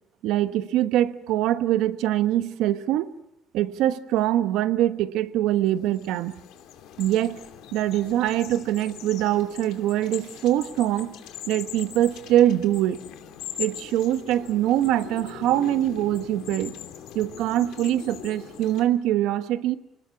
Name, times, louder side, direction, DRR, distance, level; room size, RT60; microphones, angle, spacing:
voice 1, 0.2-3.1 3.5-6.4 7.0-7.4 7.7-11.1 11.5-13.0 13.6-16.7 17.1-19.8, right 13 dB, 80° right, 11 dB, 1.2 m, -23 dB
sound 1, 5.7-18.9, left 10 dB, 75° left, 2.8 m, -41 dB
29.5 x 19.5 x 7.1 m, 0.82 s
cardioid pair, 160°, 0 cm